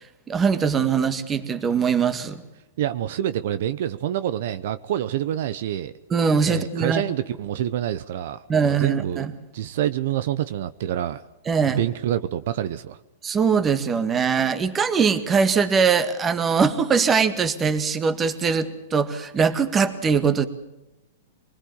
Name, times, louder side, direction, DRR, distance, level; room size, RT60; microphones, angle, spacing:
voice 1, 0.3-2.4 6.1-7.0 8.5-9.3 11.5-11.8 13.2-20.5, right 6 dB, 20° right, 11 dB, 1.8 m, -21 dB
voice 2, 2.8-5.9 6.4-9.3 9.5-11.2 11.7-13.0, right 11 dB, 65° right, 13 dB, 0.9 m, -27 dB
25.0 x 20.0 x 7.2 m, 0.97 s
hypercardioid pair, 140°, 0 cm